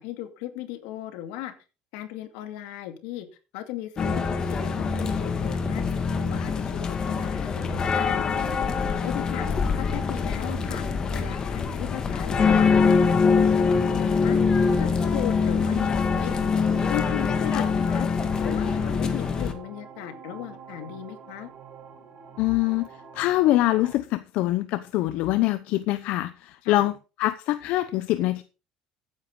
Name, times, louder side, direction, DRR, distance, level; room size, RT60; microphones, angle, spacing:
voice 1, 0.0-1.5 1.9-3.3 3.5-4.2 4.5-5.9 6.3-8.2 8.8-9.5 9.8-10.8 11.1-13.3 13.6-14.4 14.8-16.3 16.9-18.1 18.4-21.5 26.6-26.9, left 13 dB, 90° left, 2.3 m, -37 dB
sound 1, 4.0-19.5, left 5 dB, 35° left, 2.0 m, -24 dB
sound 2, 13.9-23.9, right 6 dB, 50° right, 4.2 m, -45 dB
voice 2, 22.4-22.9 23.1-26.9 27.2-28.4, left 16 dB, 70° left, 0.8 m, -24 dB
14.0 x 9.8 x 3.8 m
cardioid pair, 125°, 2 cm